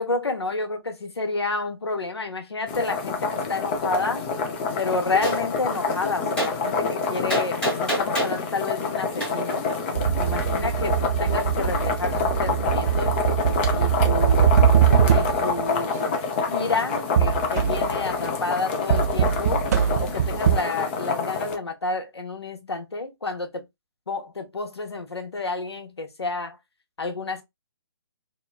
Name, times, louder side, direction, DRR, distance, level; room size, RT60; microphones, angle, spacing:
voice 1, 0.0-4.3 4.8-9.7 10.2-13.1 13.7-14.5 15.0-16.1 16.5-19.6 20.0-23.6 24.1-26.6 27.0-27.4, left 3 dB, 80° left, 0.8 m, -30 dB
sound 1, 2.7-21.6, left 4 dB, 25° left, 0.4 m, -27 dB
Gunshot gunfire, 5.2-5.4 6.4-6.5 7.3-8.4 9.2-9.3, right 1 dB, 5° left, 1.1 m, -26 dB
sound 2, 9.9-15.6 17.2-18.0 18.9-20.6, right 9 dB, 40° right, 0.4 m, -22 dB
2.9 x 2.1 x 2.2 m
figure-of-eight pair, 135°, 13 cm